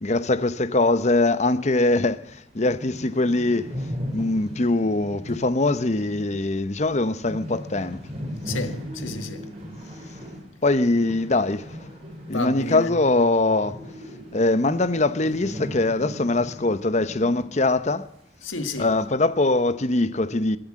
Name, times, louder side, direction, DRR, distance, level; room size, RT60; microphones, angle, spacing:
voice 1, 0.0-3.7 4.1-8.0 10.6-11.8 12.3-13.8 14.3-18.1 18.8-20.6, left 2 dB, 35° left, 0.8 m, -22 dB
sound 1, 1.9-2.0 2.3-2.4 2.6-12.8 13.1-17.6 17.8-17.9 18.6-19.0, equal, 30° right, 5.0 m, -37 dB
voice 2, 8.5-9.4 12.3-12.9 18.4-18.9, left 3 dB, 90° left, 1.7 m, -31 dB
22.0 x 7.9 x 7.6 m
head